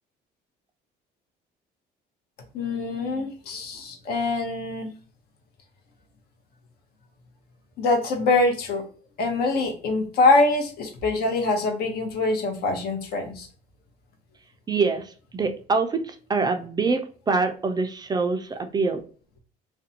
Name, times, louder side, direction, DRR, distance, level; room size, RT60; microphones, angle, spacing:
voice 1, 2.5-4.9 7.8-8.8 9.2-13.5, left 3 dB, 65° left, 4 dB, 0.8 m, -24 dB
voice 2, 14.7-19.0, right 4 dB, 25° right, 7 dB, 0.3 m, -25 dB
2.5 x 2.1 x 2.7 m, 0.42 s
cardioid pair, 110°, 17 cm